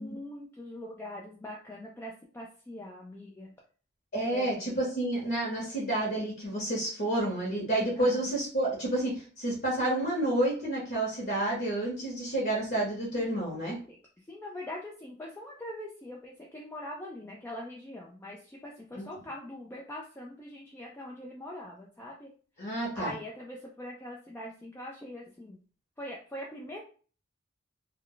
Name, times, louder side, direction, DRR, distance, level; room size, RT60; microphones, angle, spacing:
voice 1, 0.0-3.5 4.2-4.8 7.9-8.3 13.9-14.0 14.3-22.3 22.9-25.6 26.0-26.8, left 1 dB, 10° left, -2 dB, 0.3 m, -42 dB
voice 2, 4.1-13.8 18.9-19.0 22.6-23.1, right 1 dB, 45° left, -3 dB, 0.9 m, -30 dB
2.3 x 2.1 x 3.7 m, 0.41 s
head